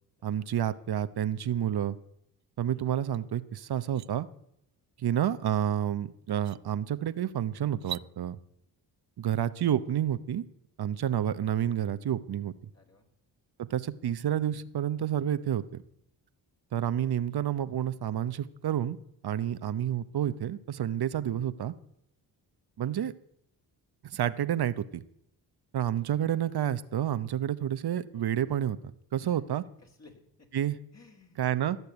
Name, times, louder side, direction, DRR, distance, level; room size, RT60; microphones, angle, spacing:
voice 1, 0.2-2.0 2.6-4.3 5.0-8.4 9.2-10.4 10.8-12.5 13.6-15.8 16.7-19.0 19.2-21.7 22.8-23.1 24.1-25.0 25.7-29.6 30.5-30.8 31.4-31.8, right 10 dB, 60° right, 14 dB, 0.9 m, -29 dB
sound 1, 3.1-3.2 3.6-4.1 5.7-5.8 6.3-6.6 7.7-8.1, right 11 dB, 40° right, 0.4 m, -41 dB
voice 2, 12.7-13.1 29.2-30.5 30.9-31.4, left 3 dB, 35° left, 1 dB, 3.0 m, -57 dB
17.0 x 6.9 x 8.0 m, 0.75 s
supercardioid pair, 60°, 44 cm